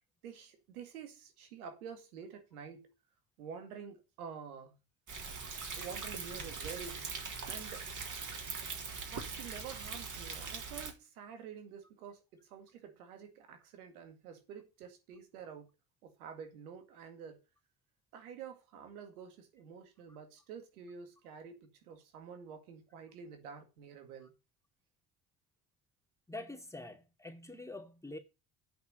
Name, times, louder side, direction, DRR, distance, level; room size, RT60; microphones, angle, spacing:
voice 1, 0.2-2.9 3.4-4.7 5.8-7.1 7.4-7.9 9.1-15.7 16.0-17.4 18.1-24.3, right 7 dB, 90° right, 2.1 m, -49 dB
Thunder, 5.1-10.9, right 4 dB, 45° right, 3.7 m, -41 dB
voice 2, 26.3-28.2, left 2 dB, 5° left, 2.7 m, -45 dB
8.5 x 5.6 x 6.9 m
hypercardioid pair, 60°, 43 cm